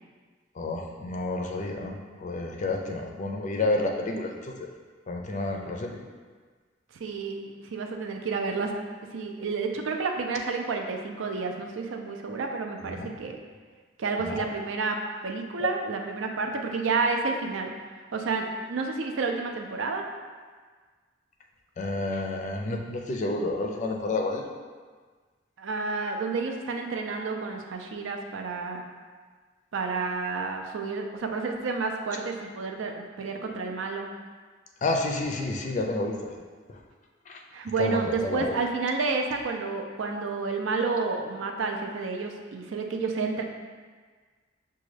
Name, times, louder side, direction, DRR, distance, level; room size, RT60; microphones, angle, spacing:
voice 1, 0.6-4.7 5.1-6.0 12.9-13.1 14.2-14.5 21.8-24.4 34.8-36.4 36.7-36.8 37.3-37.4 37.8-38.6, left 2 dB, 40° left, 2 dB, 0.4 m, -30 dB
voice 2, 6.9-8.7 9.1-13.4 14.0-15.0 15.2-17.7 18.1-20.1 25.6-28.8 29.7-34.1 37.5-43.4, right 4 dB, 75° right, 3 dB, 0.4 m, -30 dB
6.0 x 2.3 x 3.2 m, 1.5 s
head